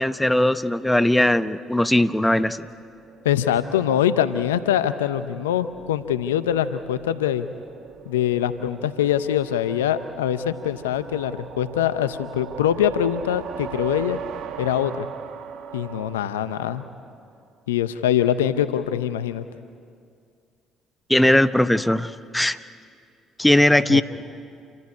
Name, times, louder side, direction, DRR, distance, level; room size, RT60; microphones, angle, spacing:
voice 1, 0.0-2.6 21.1-22.6 23.4-24.0, left 1 dB, 10° left, 12 dB, 0.9 m, -19 dB
sound 1, 2.5-17.2, right 8 dB, 65° right, 1.2 m, -40 dB
voice 2, 3.2-7.5 8.1-14.2 14.6-15.1 15.7-16.8 17.7-19.4 23.9-24.0, left 10 dB, 85° left, 12 dB, 0.7 m, -23 dB
28.0 x 15.0 x 9.8 m, 2.3 s
hypercardioid pair, 50°, 0 cm